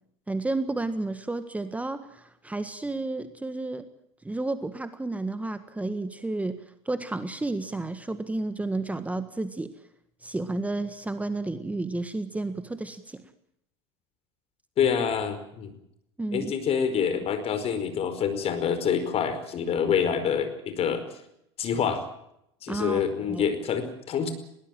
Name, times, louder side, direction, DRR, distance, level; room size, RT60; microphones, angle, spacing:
voice 1, 0.3-3.9 4.2-6.6 6.8-9.7 10.2-13.3 16.2-16.5 22.7-23.0 23.3-23.5, right 2 dB, 10° right, 11 dB, 1.6 m, -31 dB
voice 2, 14.8-15.7 16.3-21.0 21.6-22.0 22.6-24.3, left 7 dB, 45° left, 10 dB, 4.9 m, -26 dB
21.0 x 18.5 x 9.1 m, 0.78 s
hypercardioid pair, 90°, 15 cm